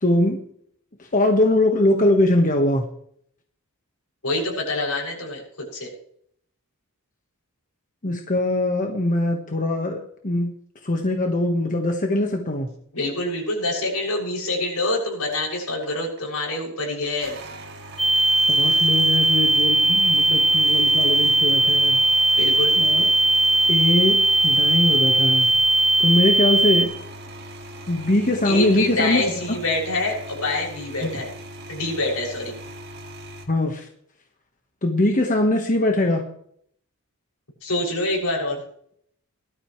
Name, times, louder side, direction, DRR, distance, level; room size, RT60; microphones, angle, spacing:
voice 1, 0.0-0.4 1.1-2.8 8.0-10.5 10.8-12.7 18.5-22.0 22.8-23.1 23.7-25.5 26.0-26.9 27.9-29.2 31.0-31.1 33.5-33.9 34.8-36.2, left 1 dB, 40° left, 2 dB, 1.5 m, -22 dB
voice 2, 4.2-5.9 12.9-17.4 22.3-22.8 28.4-31.3 31.7-32.5 37.6-38.6, left 2 dB, 80° left, -2 dB, 6.9 m, -26 dB
sound 1, 15.3-16.4 17.1-33.5, right 1 dB, 50° right, 2.5 m, -39 dB
sound 2, 18.0-26.8, right 2 dB, ahead, 2.3 m, -18 dB
19.0 x 13.0 x 3.3 m, 0.65 s
head